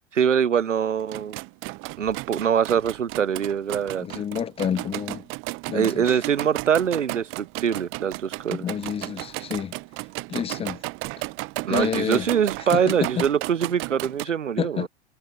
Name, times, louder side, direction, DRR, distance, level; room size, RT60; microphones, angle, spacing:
voice 1, 0.1-1.4 2.0-4.1 5.7-8.7 11.6-14.9, right 8 dB, 85° right, 0.7 m, -23 dB
sound 1, 1.0-14.3, right 25 dB, 35° right, 1.0 m, -34 dB
voice 2, 4.0-5.3 5.7-6.2 8.5-9.7 10.3-10.8 11.7-12.3 12.7-13.2 14.6-14.9, left 8 dB, 15° left, 0.8 m, -29 dB
figure-of-eight pair, 100°, 36 cm